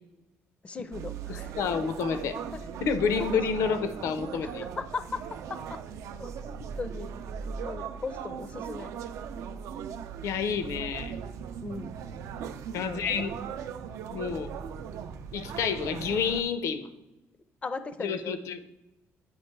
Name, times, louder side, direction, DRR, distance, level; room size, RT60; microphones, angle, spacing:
voice 1, 0.6-1.6 2.1-2.2 2.5-2.6 3.2-3.4 4.4-5.2 5.5-5.8 6.2-7.1 7.6-8.9 11.6-12.0 12.8-13.1 17.6-18.4, left 4 dB, 25° left, 11 dB, 0.4 m, -38 dB
sound 1, 0.9-16.4, right 7 dB, 80° right, 0.4 m, -38 dB
voice 2, 1.3-2.3 2.8-4.6 10.2-11.2 12.7-13.3 14.1-14.5 15.3-16.9 18.0-18.7, left 6 dB, 75° left, 11 dB, 0.5 m, -29 dB
8.9 x 3.0 x 4.5 m, 0.99 s
cardioid pair, 145°, 5 cm